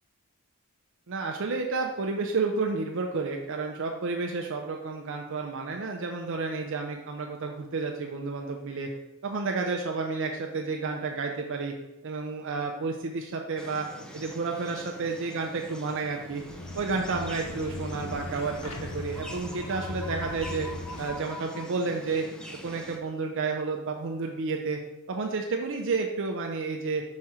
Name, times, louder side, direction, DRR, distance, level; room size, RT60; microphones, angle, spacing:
voice 1, 1.1-8.9 9.2-11.7 12.0-13.9 14.1-16.4 16.7-20.7 21.0-22.2 22.6-24.8 25.1-27.0, right 4 dB, 60° right, 2 dB, 0.6 m, -31 dB
sound 1, 13.6-23.0, equal, 5° left, 0.5 m, -44 dB
sound 2, 16.2-21.3, left 2 dB, 85° left, 0.8 m, -39 dB
5.8 x 4.2 x 4.8 m, 0.93 s
head